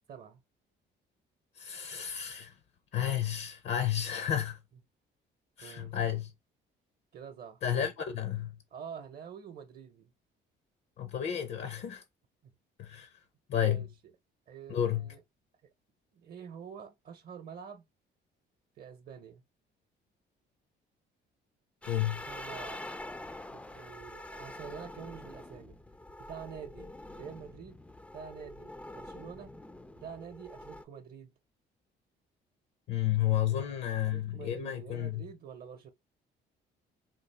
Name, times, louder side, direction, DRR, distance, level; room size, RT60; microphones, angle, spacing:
voice 1, 0.1-0.4 5.6-5.9 7.1-7.6 8.7-10.1 12.4-12.5 13.6-13.9 14.5-15.2 16.1-17.8 18.8-19.4 22.1-22.8 23.5-25.8 26.2-26.9 27.2-27.8 28.1-29.5 30.0-31.3 33.5-35.9, right 7 dB, 55° right, 0.7 m, -47 dB
voice 2, 1.6-2.5 2.9-4.6 5.6-6.3 7.6-8.5 11.0-12.0 12.8-13.1 13.5-13.9 14.7-15.1 21.9-22.2 32.9-35.2, left 10 dB, 65° left, 0.7 m, -31 dB
sound 1, 21.8-30.8, left 1 dB, 5° left, 0.3 m, -45 dB
3.8 x 2.4 x 3.2 m
cardioid pair, 115°, 19 cm